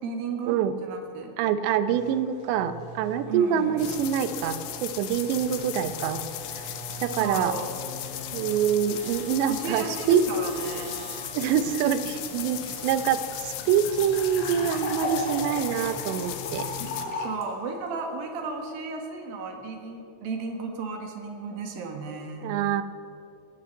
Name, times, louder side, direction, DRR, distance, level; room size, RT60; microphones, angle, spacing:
voice 1, 0.0-1.3 3.3-4.1 7.2-7.7 9.5-10.9 17.1-22.5, right 4 dB, 65° right, 3 dB, 3.2 m, -34 dB
voice 2, 1.4-6.2 6.6-6.7 7.0-7.5 8.3-10.2 11.3-16.7 22.4-22.8, right 9 dB, 85° right, 11 dB, 3.0 m, -25 dB
sound 1, 1.9-15.3, right 3 dB, 40° right, 4.3 m, -45 dB
sound 2, 3.8-17.0, left 11 dB, 80° left, 3.1 m, -37 dB
sound 3, 12.7-12.8 12.9-13.0 13.3-17.4, left 3 dB, 45° left, 2.8 m, -34 dB
19.5 x 8.6 x 8.1 m, 2.6 s
omnidirectional pair, 5.0 m